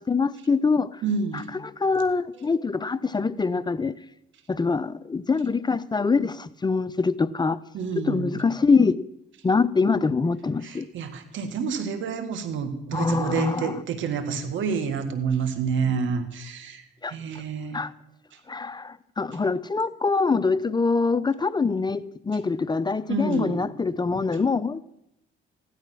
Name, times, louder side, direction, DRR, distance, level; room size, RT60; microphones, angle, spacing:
voice 1, 0.0-1.0 1.3-4.0 4.5-7.6 8.0-9.0 9.4-10.9 12.9-13.8 17.0-17.2 17.7-17.9 18.5-24.8, left 4 dB, 20° left, 0.6 m, -24 dB
voice 2, 1.0-1.6 2.4-2.5 7.7-8.4 10.6-17.8 23.1-23.6, right 5 dB, 75° right, 1.9 m, -29 dB
15.5 x 12.0 x 6.1 m
cardioid pair, 90°, 20 cm